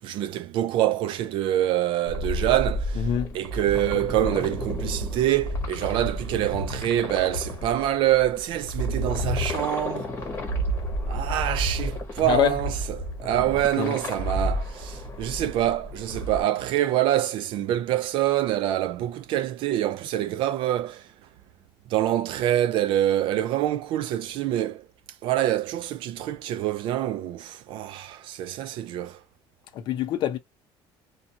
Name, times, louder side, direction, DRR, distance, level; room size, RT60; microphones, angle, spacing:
voice 1, 0.0-3.1 3.3-10.1 11.1-21.1 21.9-24.9 25.2-29.2, right 12 dB, 55° right, 0.4 m, -26 dB
sound 1, 2.1-16.4, equal, 20° left, 1.1 m, -31 dB
voice 2, 3.0-3.4 12.2-12.6 13.8-14.0 29.7-30.4, left 11 dB, 45° left, 0.6 m, -25 dB
2.6 x 2.3 x 2.7 m
cardioid pair, 180°, 10 cm